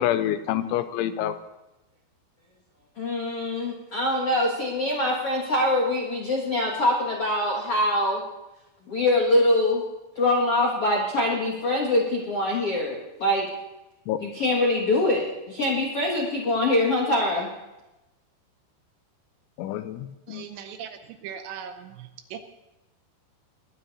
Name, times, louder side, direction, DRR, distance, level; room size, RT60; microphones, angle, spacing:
voice 1, 0.0-1.4 14.1-14.2 19.6-20.5, left 11 dB, 85° left, 11 dB, 3.0 m, -27 dB
voice 2, 2.9-8.2 8.9-9.8 10.1-13.5 14.2-17.5, left 1 dB, 65° left, -2 dB, 1.4 m, -24 dB
voice 3, 20.3-22.4, right 8 dB, 75° right, 7 dB, 2.8 m, -39 dB
20.5 x 12.0 x 4.1 m, 0.98 s
omnidirectional pair, 5.5 m